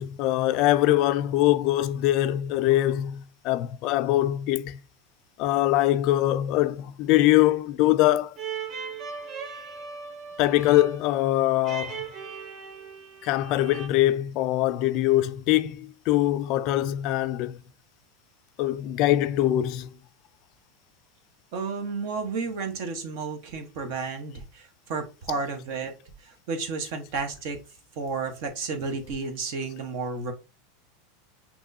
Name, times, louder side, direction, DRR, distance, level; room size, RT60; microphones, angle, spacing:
voice 1, 0.0-4.8 5.4-8.4 10.4-12.0 13.2-17.6 18.6-19.9 25.3-25.4, left 15 dB, 45° left, 0.3 m, -23 dB
sound 1, 8.4-13.9, right 5 dB, 30° right, 0.7 m, -38 dB
voice 2, 21.5-25.9 26.2-27.6 28.0-30.3, right 4 dB, 55° right, 1.1 m, -32 dB
6.1 x 3.0 x 2.7 m
supercardioid pair, 155°, 0 cm